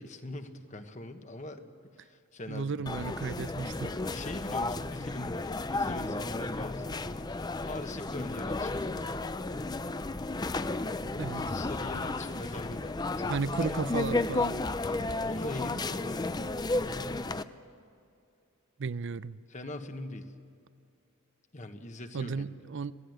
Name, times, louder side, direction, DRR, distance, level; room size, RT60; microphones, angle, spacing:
voice 1, 0.0-2.8 4.1-7.0 7.6-9.2 11.4-13.3 13.7-13.8 14.8-16.5 19.5-20.3 21.5-22.4, left 1 dB, 35° left, 7 dB, 1.3 m, -42 dB
voice 2, 2.5-4.0 11.2-11.5 13.3-14.6 18.8-19.4 22.1-22.9, right 4 dB, 55° right, 17 dB, 0.5 m, -34 dB
sound 1, 2.9-17.4, left 2 dB, 20° left, 0.5 m, -33 dB
26.5 x 17.5 x 7.9 m, 2.5 s
head